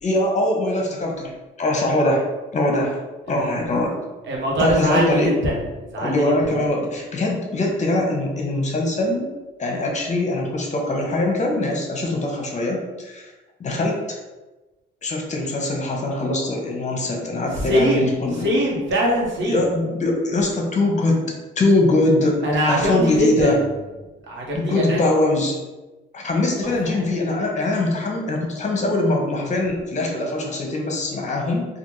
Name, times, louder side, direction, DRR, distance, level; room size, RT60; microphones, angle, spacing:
voice 1, 0.0-1.3 1.6-2.2 2.5-3.0 3.3-3.9 4.6-5.4 6.0-9.3 9.6-13.3 13.6-14.2 15.0-18.5 19.4-21.2 21.6-22.4 22.7-23.6 24.5-25.6 26.1-31.7, left 2 dB, 35° left, 0 dB, 0.8 m, -22 dB
voice 2, 3.3-3.6 4.3-6.2 6.5-6.6 17.6-18.1 18.4-19.6 22.4-23.5 24.3-25.0 26.6-26.7, equal, 70° right, -3 dB, 1.0 m, -22 dB
3.4 x 2.4 x 3.0 m, 1.1 s
cardioid pair, 90°, 20 cm